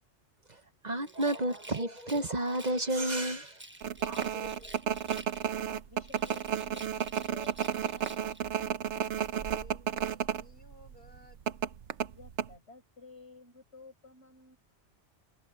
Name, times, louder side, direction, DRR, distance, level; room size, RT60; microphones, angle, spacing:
voice 1, 0.5-4.8, right 1 dB, 40° right, 1.0 m, -32 dB
Rattle, 1.0-2.9 3.4-5.7 6.0-8.5, right 1 dB, 10° right, 1.0 m, -51 dB
sound 1, 3.8-10.4 10.7-10.9 11.5-12.5, right 8 dB, 80° right, 1.2 m, -32 dB
voice 2, 4.6-5.0 5.9-8.2 12.1-14.6, left 3 dB, 70° left, 7.1 m, -54 dB
voice 3, 9.2-11.4, left 2 dB, 50° left, 4.0 m, -58 dB
omnidirectional pair, 1.2 m